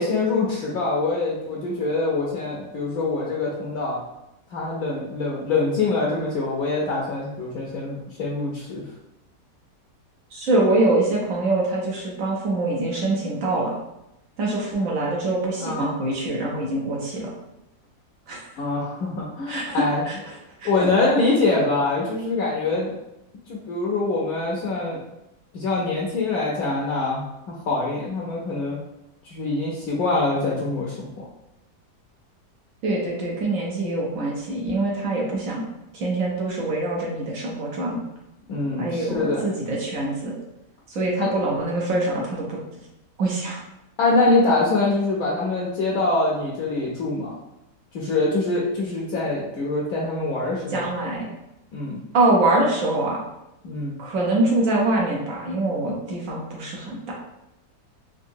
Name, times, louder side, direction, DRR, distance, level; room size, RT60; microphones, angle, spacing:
voice 1, 0.0-4.0 4.5-8.9 15.6-15.9 18.6-20.0 20.6-22.9 23.5-25.0 25.5-28.8 29.2-31.2 38.5-39.5 41.2-41.3 44.0-47.3 47.9-50.9 51.7-52.0 53.6-53.9, left 3 dB, 70° left, -4 dB, 1.0 m, -24 dB
voice 2, 10.3-13.8 14.4-17.3 18.3-18.4 19.5-20.3 20.6-20.7 32.8-35.7 35.9-38.0 38.8-40.4 40.9-42.6 43.2-43.6 50.7-51.3 52.1-53.2 54.0-57.1, right 2 dB, 60° right, -2 dB, 1.0 m, -24 dB
3.8 x 2.6 x 2.6 m, 0.89 s
omnidirectional pair, 1.8 m